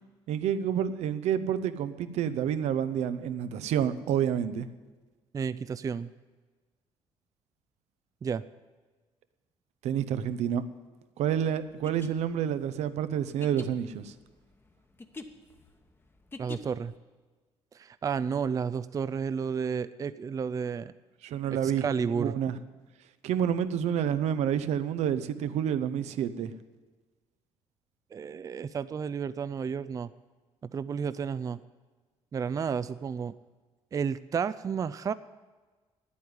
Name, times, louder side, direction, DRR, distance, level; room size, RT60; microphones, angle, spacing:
voice 1, 0.3-4.7 9.8-10.6 11.2-14.1 21.2-22.6 23.2-26.5, right 9 dB, 80° right, 12 dB, 0.7 m, -29 dB
voice 2, 5.3-6.1 8.2-8.4 16.4-16.9 17.7-20.9 21.5-22.3 28.1-30.1 30.7-31.6 32.3-33.3 33.9-35.1, right 6 dB, 30° right, 14 dB, 0.4 m, -31 dB
sound 1, 11.7-17.0, left 3 dB, 20° left, 1.0 m, -45 dB
9.5 x 8.5 x 9.5 m, 1.3 s
cardioid pair, 100°, 11 cm